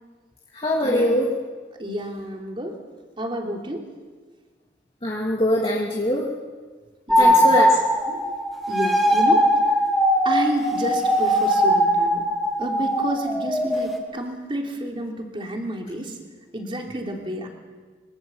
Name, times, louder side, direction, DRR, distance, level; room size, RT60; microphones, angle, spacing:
voice 1, 0.5-1.3 5.0-6.3 7.2-7.8 8.1-8.2, left 1 dB, 30° left, -3 dB, 2.7 m, -22 dB
voice 2, 1.8-2.8 3.2-3.9 7.1-7.5 8.7-9.5 10.2-12.3 12.6-16.2 16.5-17.5, right 1 dB, 30° right, 1 dB, 3.4 m, -30 dB
sound 1, 7.1-14.0, equal, ahead, 3.1 m, -20 dB
25.5 x 25.0 x 7.3 m, 1.5 s
head